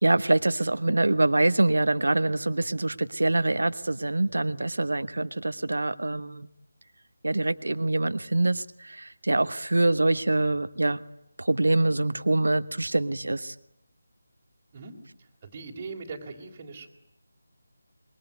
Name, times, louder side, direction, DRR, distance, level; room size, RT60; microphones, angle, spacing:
voice 1, 0.0-6.5 7.2-11.0 11.4-13.5, right 2 dB, 70° right, 14 dB, 1.2 m, -25 dB
voice 2, 14.7-16.9, right 4 dB, 25° right, -1 dB, 3.4 m, -41 dB
25.5 x 22.5 x 9.4 m, 0.77 s
figure-of-eight pair, 160°, 0 cm